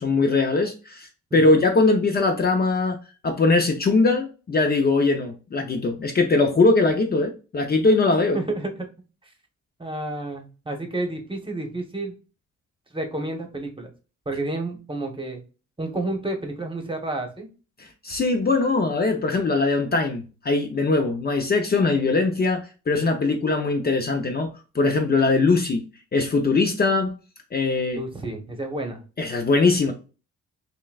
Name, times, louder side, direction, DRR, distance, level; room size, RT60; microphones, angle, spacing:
voice 1, 0.0-3.0 3.2-8.4 17.8-25.8 26.1-27.1 27.5-28.0 29.2-29.9, left 3 dB, 30° left, 4 dB, 0.6 m, -21 dB
voice 2, 8.3-8.9 9.8-12.1 12.9-13.9 14.2-15.4 15.8-17.5 27.9-29.0, right 2 dB, 15° right, 4 dB, 1.1 m, -30 dB
5.8 x 2.2 x 2.3 m, 0.33 s
cardioid pair, 90°, 30 cm